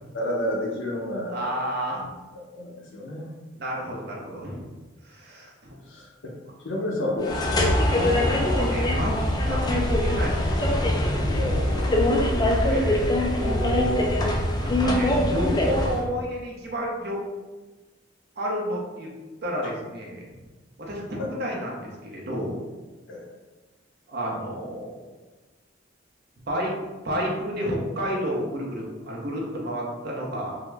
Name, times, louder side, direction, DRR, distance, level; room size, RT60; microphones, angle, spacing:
voice 1, 0.1-1.5 1.9-2.1 2.5-3.3 5.3-5.5 5.9-6.3 6.6-7.7 8.2-8.5 11.3-12.3 21.2-21.3 23.1-23.2, left 1 dB, 80° left, -2 dB, 0.7 m, -31 dB
voice 2, 1.3-2.1 3.5-4.7 5.0-5.5 8.0-9.1 9.5-10.6 11.8-13.0 13.4-14.1 14.6-17.2 18.4-19.1 19.4-20.3 20.8-22.6 24.1-25.0 26.5-26.7 27.0-30.6, equal, 55° right, -2 dB, 0.8 m, -30 dB
sound 1, 7.2-16.1, left 1 dB, 20° left, 0.3 m, -23 dB
3.6 x 2.1 x 3.3 m, 1.2 s
head